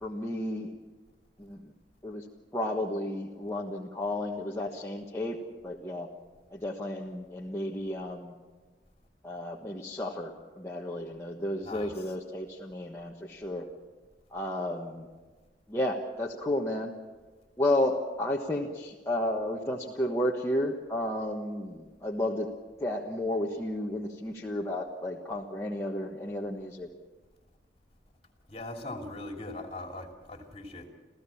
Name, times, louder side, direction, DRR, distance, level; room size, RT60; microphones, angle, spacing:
voice 1, 0.0-0.7 1.4-1.7 2.0-2.2 2.5-6.1 6.5-8.3 9.2-13.6 14.3-15.1 15.7-16.9 17.6-22.5 22.8-26.9, left 1 dB, 15° left, -2 dB, 1.3 m, -32 dB
voice 2, 11.6-12.0 28.5-30.9, left 2 dB, 35° left, 3 dB, 2.8 m, -40 dB
28.5 x 15.5 x 7.2 m, 1.3 s
head